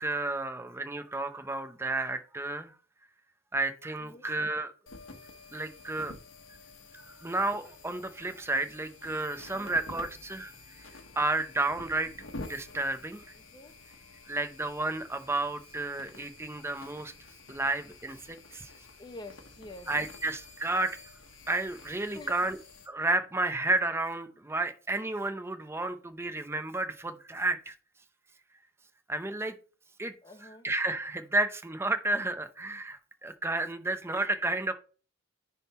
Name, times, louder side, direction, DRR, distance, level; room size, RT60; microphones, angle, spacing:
voice 1, 0.0-2.7 3.5-4.7 5.5-6.1 6.9-10.5 11.2-12.1 12.4-13.2 14.3-17.1 17.5-18.7 19.9-21.0 21.5-22.6 22.9-27.7 29.1-29.5 30.0-30.1 30.4-34.7, right 2 dB, 15° right, 0.7 m, -31 dB
sound 1, 4.9-22.9, left 2 dB, 75° left, 1.2 m, -49 dB
voice 2, 13.3-13.7 19.0-19.9 22.1-22.3 30.2-30.7, left 2 dB, 25° left, 0.9 m, -47 dB
10.0 x 3.7 x 4.2 m
head